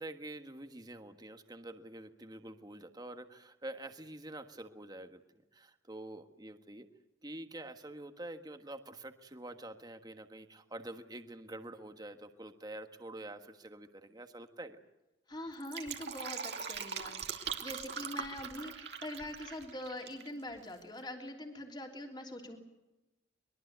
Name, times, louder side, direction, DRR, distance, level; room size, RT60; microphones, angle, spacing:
voice 1, 0.0-5.2 5.5-6.9 7.2-14.8, right 1 dB, 20° right, 7 dB, 1.5 m, -47 dB
voice 2, 15.3-22.6, left 1 dB, 25° left, 2 dB, 3.3 m, -44 dB
Fill (with liquid), 15.5-20.3 20.5-20.6, right 7 dB, 60° right, 2.4 m, -41 dB
24.0 x 22.0 x 8.1 m, 1.0 s
head